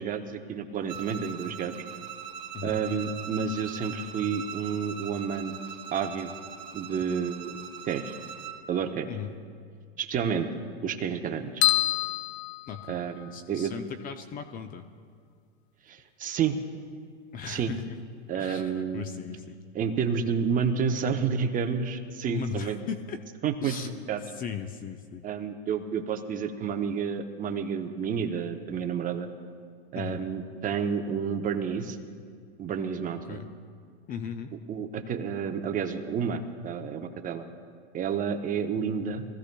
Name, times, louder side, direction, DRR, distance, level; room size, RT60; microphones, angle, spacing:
voice 1, 0.0-1.7 2.6-5.5 5.9-6.3 6.7-7.6 7.9-8.0 8.7-9.1 10.0-10.5 10.8-11.7 12.9-13.7 15.9-16.6 17.4-17.7 18.3-19.0 19.7-22.8 23.4-24.2 25.2-29.3 29.9-32.0 32.6-33.4 34.7-37.4 37.9-39.2, right 6 dB, 25° right, 6 dB, 0.8 m, -30 dB
Bowed string instrument, 0.9-8.6, right 7 dB, 45° right, 1.9 m, -41 dB
sound 1, 11.6-13.4, left 13 dB, 80° left, 0.7 m, -27 dB
voice 2, 12.7-13.0 13.3-14.9 17.3-17.9 18.3-19.6 22.3-23.2 23.6-23.9 24.4-25.3 29.9-30.2 33.3-33.5 34.1-34.5, left 7 dB, 25° left, 8 dB, 0.5 m, -37 dB
22.5 x 15.0 x 2.3 m, 2.1 s
hypercardioid pair, 125°, 32 cm